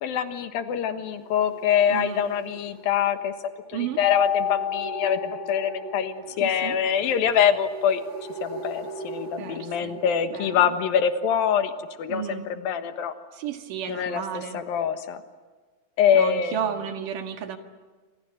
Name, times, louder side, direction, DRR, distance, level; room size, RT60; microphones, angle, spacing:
voice 1, 0.0-3.3 3.7-8.0 8.4-11.7 12.0-13.1 13.9-15.2 16.0-16.6, left 8 dB, 80° left, 8 dB, 3.2 m, -24 dB
sound 1, 1.0-10.9, right 3 dB, 25° right, 4.1 m, -41 dB
voice 2, 1.9-2.2 3.7-4.0 6.4-7.1 9.4-10.0 10.3-10.7 12.1-12.5 13.3-14.6 16.1-17.6, right 8 dB, 70° right, 6 dB, 3.2 m, -33 dB
Mallet percussion, 4.0-6.3, left 10 dB, 65° left, 3.6 m, -29 dB
28.0 x 26.5 x 8.0 m, 1.4 s
omnidirectional pair, 4.1 m